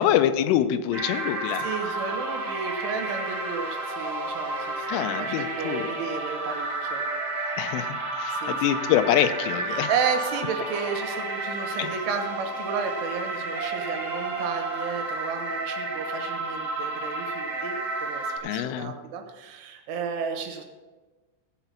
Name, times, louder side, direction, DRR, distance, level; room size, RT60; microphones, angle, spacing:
voice 1, 0.0-1.7 4.9-5.9 7.6-9.9 11.8-12.0 18.4-18.9, left 11 dB, 90° left, 10 dB, 3.1 m, -25 dB
sound 1, 0.9-18.4, right 2 dB, 35° right, 2.7 m, -31 dB
voice 2, 1.6-7.0 8.3-8.8 9.7-20.6, right 6 dB, 80° right, 4 dB, 3.7 m, -33 dB
16.0 x 6.0 x 5.7 m, 1.3 s
omnidirectional pair, 5.6 m